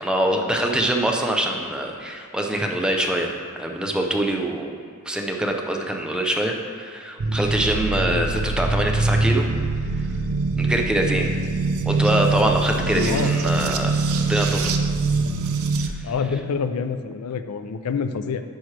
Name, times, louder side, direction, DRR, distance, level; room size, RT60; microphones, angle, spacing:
voice 1, 0.0-4.8 5.1-9.5 10.6-11.3 11.9-13.9 14.3-14.7 15.8-16.1, right 1 dB, 5° right, 1 dB, 0.5 m, -24 dB
sound 1, 7.2-15.9, right 3 dB, 70° right, 0.5 m, -23 dB
voice 2, 12.9-13.4 16.0-18.4, left 5 dB, 90° left, 10 dB, 0.4 m, -27 dB
10.0 x 6.1 x 3.3 m, 2.1 s
head